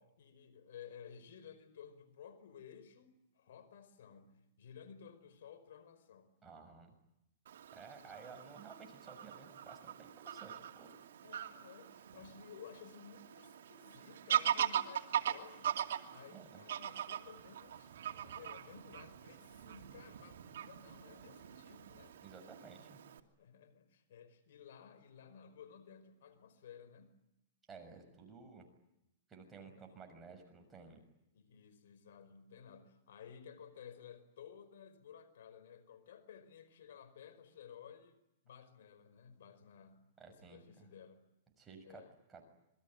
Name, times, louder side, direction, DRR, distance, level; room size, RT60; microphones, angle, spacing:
voice 1, 0.0-6.4 11.2-22.2 23.4-27.2 29.5-29.8 31.3-41.2 41.8-42.1, left 8 dB, 75° left, 13 dB, 5.0 m, -56 dB
voice 2, 6.4-6.9 7.7-10.9 16.3-16.6 22.2-23.0 27.7-28.7 29.3-31.0 40.2-40.6 41.6-42.0 42.3-42.5, right 5 dB, 15° right, 3 dB, 6.5 m, -54 dB
Fowl / Bird vocalization bird call bird song, 7.5-23.2, right 10 dB, 80° right, 2.6 m, -41 dB
27.5 x 23.0 x 9.0 m, 0.85 s
hypercardioid pair, 150°, 0 cm